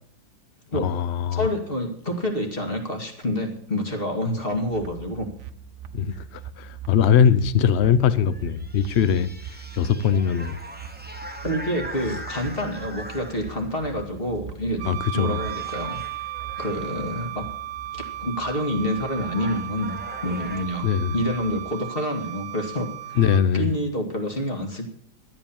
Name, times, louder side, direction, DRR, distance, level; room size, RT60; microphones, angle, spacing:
voice 1, 0.7-1.5 5.9-9.3 9.7-10.6 14.8-15.4 20.8-21.1 23.2-23.7, left 8 dB, 55° left, 15 dB, 0.7 m, -21 dB
voice 2, 1.3-5.3 6.1-6.2 11.4-14.8 15.1-16.0 16.6-17.4 17.9-23.2 23.5-24.9, left 1 dB, 30° left, 3 dB, 2.3 m, -28 dB
sound 1, 4.5-21.7, right 9 dB, 50° right, 0.9 m, -42 dB
sound 2, 8.2-13.8 14.7-15.0 15.3-17.1 18.5-18.6 18.9-20.6, right 1 dB, 5° right, 0.8 m, -41 dB
Wind instrument woodwind instrument, 14.8-23.5, right 13 dB, 90° right, 1.5 m, -35 dB
13.0 x 9.0 x 7.2 m, 0.62 s
omnidirectional pair, 2.0 m